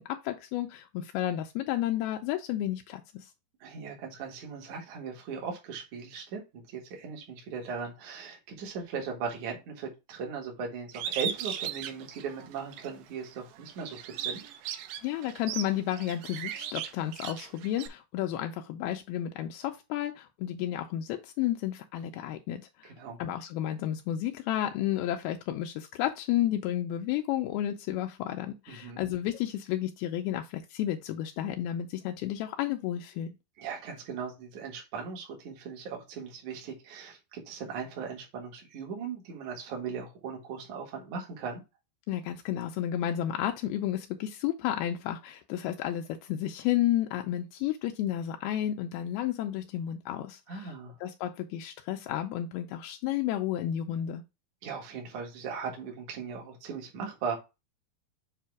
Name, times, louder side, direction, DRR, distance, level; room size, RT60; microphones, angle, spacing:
voice 1, 0.0-3.3 15.0-22.9 23.2-33.4 42.1-50.8 51.0-54.2, left 12 dB, 85° left, 2.4 m, -32 dB
voice 2, 3.6-14.5 22.8-23.2 28.7-29.0 33.6-41.6 50.5-51.0 54.6-57.4, right 5 dB, 55° right, 2.7 m, -38 dB
Bird, 10.9-12.9 13.4-17.9, right 9 dB, 80° right, 2.3 m, -37 dB
7.5 x 2.7 x 4.6 m
omnidirectional pair, 4.4 m